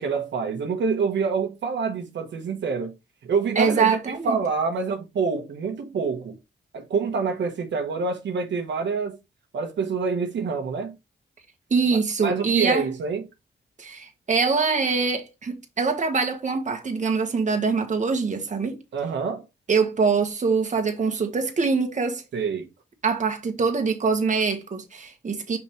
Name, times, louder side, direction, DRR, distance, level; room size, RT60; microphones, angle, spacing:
voice 1, 0.0-2.9 3.2-4.0 4.2-6.3 6.7-9.2 9.5-10.9 12.2-13.2 18.9-19.5 22.3-22.6, right 5 dB, 75° right, 1.3 m, -26 dB
voice 2, 3.5-4.4 11.7-12.9 13.8-18.8 19.7-22.2 23.0-25.6, right 4 dB, 40° right, 1.5 m, -24 dB
5.7 x 5.2 x 3.2 m
cardioid pair, 100°, 18 cm